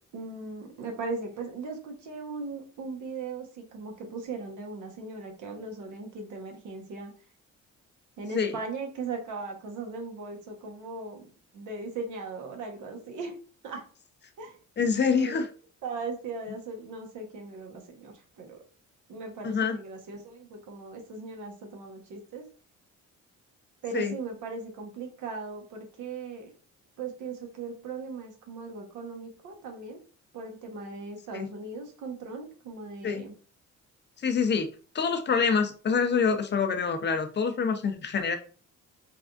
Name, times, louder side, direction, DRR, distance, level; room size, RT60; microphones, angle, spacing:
voice 1, 0.1-7.1 8.2-11.3 11.5-13.4 13.6-13.8 14.4-14.6 15.1-15.4 15.8-18.6 19.1-22.5 23.8-26.5 27.0-30.0 30.3-33.3, right 4 dB, 80° right, 2 dB, 1.0 m, -38 dB
voice 2, 14.8-15.5 19.4-19.8 23.9-24.1 31.3-31.5 33.0-33.2 34.2-34.7 34.9-38.4, left 5 dB, 35° left, 7 dB, 0.5 m, -26 dB
3.4 x 2.3 x 2.4 m, 0.39 s
cardioid pair, 90°, 30 cm